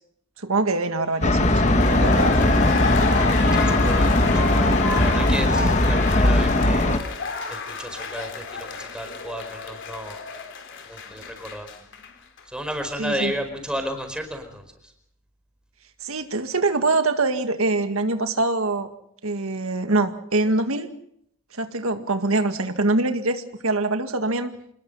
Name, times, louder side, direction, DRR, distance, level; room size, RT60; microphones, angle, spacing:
voice 1, 0.4-1.6 1.9-2.4 13.0-13.3 16.0-18.9 19.2-20.9 21.5-24.5, right 2 dB, 85° right, 7 dB, 1.9 m, -24 dB
sound 1, 1.2-12.1 12.4-12.5, left 4 dB, 55° left, 3.9 m, -29 dB
sound 2, 1.2-7.0, left 1 dB, 35° left, 1.5 m, -19 dB
voice 2, 3.6-7.0 7.5-10.2 10.9-11.7 12.4-14.9, equal, 5° right, 5 dB, 4.8 m, -33 dB
27.5 x 20.5 x 5.6 m, 0.72 s
head